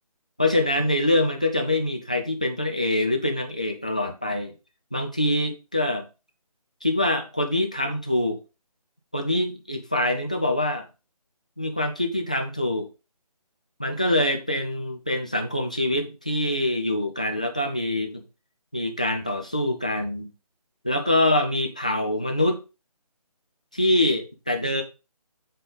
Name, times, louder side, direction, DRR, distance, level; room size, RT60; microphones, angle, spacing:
voice 1, 0.4-4.5 4.9-6.0 6.8-8.4 9.1-10.9 11.6-12.9 13.8-18.2 18.7-20.3 20.8-22.6 23.7-24.8, left 1 dB, 10° left, 0.3 m, -24 dB
7.8 x 3.7 x 4.9 m
figure-of-eight pair, 150°, 20 cm